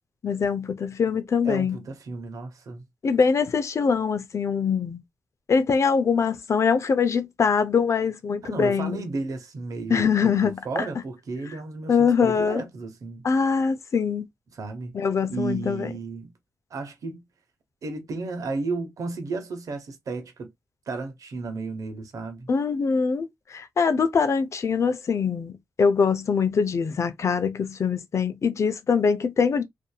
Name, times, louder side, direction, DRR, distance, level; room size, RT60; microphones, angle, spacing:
voice 1, 0.2-1.8 3.0-5.0 5.5-9.0 9.9-10.6 11.9-12.6 13.2-14.2 14.9-15.9 22.5-29.6, left 5 dB, 55° left, 0.5 m, -23 dB
voice 2, 1.4-2.8 8.4-13.3 14.5-14.9 15.3-16.3 16.7-17.2 17.8-20.5 20.9-22.5, right 3 dB, 70° right, 0.9 m, -33 dB
2.7 x 2.6 x 2.2 m
cardioid pair, 65°, 6 cm